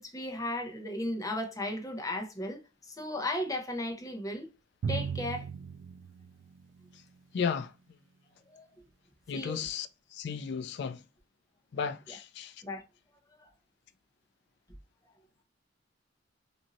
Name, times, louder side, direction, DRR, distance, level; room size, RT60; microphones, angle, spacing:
voice 1, 0.0-4.5 4.9-5.5 8.5-8.7 9.3-9.6 12.6-12.8 13.4-13.5, left 1 dB, 20° left, 0.7 m, -35 dB
Drum, 4.8-7.2, right 6 dB, 70° right, 0.3 m, -37 dB
voice 2, 7.3-7.7 9.3-11.0 11.7-12.6, left 6 dB, 60° left, 0.3 m, -34 dB
2.6 x 2.6 x 2.8 m
head